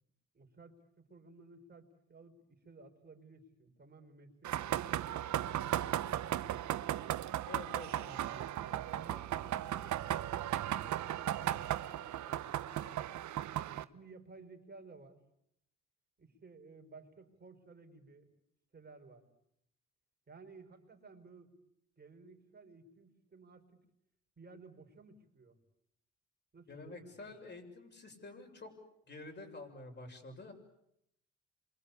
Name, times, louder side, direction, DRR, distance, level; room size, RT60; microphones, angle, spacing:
voice 1, 0.3-4.8 8.1-13.1 13.8-15.2 16.2-18.3 18.7-19.2 20.3-21.6 22.0-23.9 24.4-25.6 26.5-27.2, right 3 dB, 35° right, 4 dB, 5.2 m, -56 dB
sound 1, 4.4-13.8, right 12 dB, 70° right, 1.0 m, -36 dB
voice 2, 7.5-8.1 26.7-28.7 29.1-30.5, left 3 dB, 35° left, 4 dB, 7.1 m, -49 dB
28.0 x 24.5 x 8.5 m, 0.77 s
cardioid pair, 90°, 30 cm